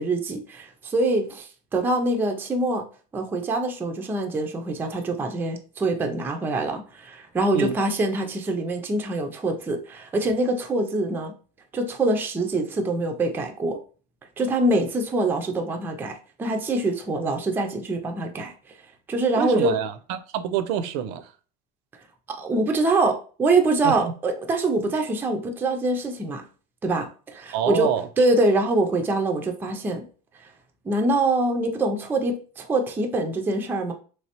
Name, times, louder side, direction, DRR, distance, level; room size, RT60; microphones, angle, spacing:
voice 1, 0.0-2.8 3.1-11.3 11.7-13.8 14.4-18.8 19.1-19.8 22.3-26.5 26.8-30.0 30.4-30.5 30.8-33.9, right 2 dB, 10° right, 0.3 m, -24 dB
voice 2, 19.4-21.3 23.8-24.1 27.5-28.1, right 9 dB, 70° right, 0.5 m, -26 dB
3.3 x 3.2 x 2.8 m
cardioid pair, 160°, 21 cm